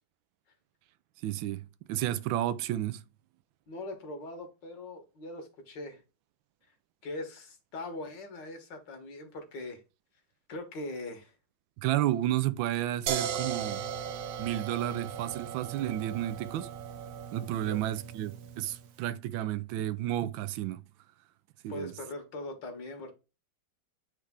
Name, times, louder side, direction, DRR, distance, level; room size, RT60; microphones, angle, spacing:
voice 1, 1.2-3.0 11.8-13.8 14.4-16.8 17.3-20.8 21.6-21.9, right 13 dB, 90° right, 1.4 m, -32 dB
voice 2, 3.7-6.0 7.0-9.8 10.5-11.3 17.6-17.8 21.7-23.1, left 2 dB, 70° left, 2.0 m, -41 dB
sound 1, 13.1-18.9, right 8 dB, 70° right, 1.3 m, -37 dB
8.3 x 3.3 x 3.6 m
omnidirectional pair, 2.1 m